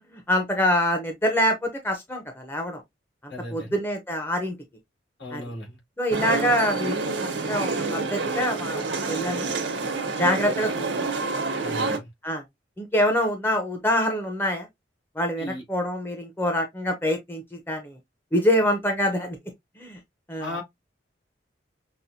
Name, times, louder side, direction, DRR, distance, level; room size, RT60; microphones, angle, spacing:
voice 1, 0.1-2.8 3.2-4.5 5.3-5.4 6.0-7.0 7.4-9.6 10.2-10.9 12.2-12.4 12.8-14.7 15.2-18.0 18.3-19.4 19.8-20.0 20.3-20.6, equal, 10° left, 0.7 m, -25 dB
voice 2, 3.3-3.8 5.2-5.8 11.6-12.1 15.4-15.6 20.4-20.6, left 1 dB, 70° left, 2.4 m, -36 dB
sound 1, 6.1-12.0, right 3 dB, 80° right, 1.0 m, -28 dB
5.8 x 2.2 x 2.6 m
head